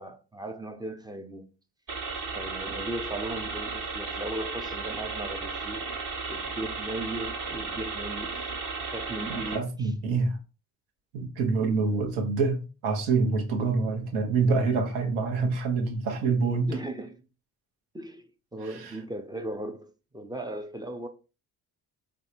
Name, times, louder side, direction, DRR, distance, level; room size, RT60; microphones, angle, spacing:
voice 1, 0.0-1.5 2.3-5.8 6.3-8.4 8.8-9.9 16.7-17.2 17.9-21.1, right 1 dB, 10° right, 0.4 m, -37 dB
sound 1, 1.9-9.6, right 4 dB, 35° right, 1.0 m, -35 dB
voice 2, 9.5-10.4 11.1-16.7 18.6-19.0, right 4 dB, 70° right, 1.0 m, -26 dB
3.4 x 2.6 x 2.5 m
hypercardioid pair, 45°, 50 cm